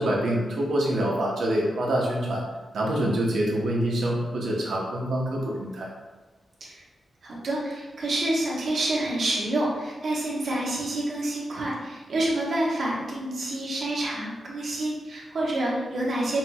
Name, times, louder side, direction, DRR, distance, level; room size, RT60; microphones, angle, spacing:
voice 1, 0.0-2.4 2.7-5.9, right 1 dB, 85° right, -3 dB, 0.9 m, -26 dB
voice 2, 7.2-16.4, right 1 dB, 60° right, -4 dB, 1.0 m, -28 dB
5.8 x 2.9 x 2.3 m, 1.2 s
wide cardioid pair, 165°, 0 cm